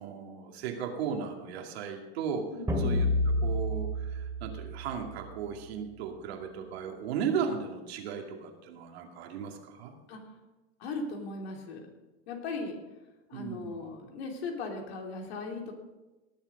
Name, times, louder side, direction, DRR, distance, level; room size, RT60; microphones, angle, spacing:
voice 1, 0.0-2.5 2.8-9.9 13.3-13.8, right 7 dB, 70° right, 3 dB, 2.4 m, -36 dB
sound 1, 2.7-5.3, left 1 dB, 10° right, 2.6 m, -29 dB
voice 2, 10.8-11.9 12.3-12.8 13.3-15.7, left 3 dB, 70° left, 2 dB, 3.1 m, -38 dB
18.5 x 7.3 x 5.3 m, 1.1 s
hypercardioid pair, 105°, 32 cm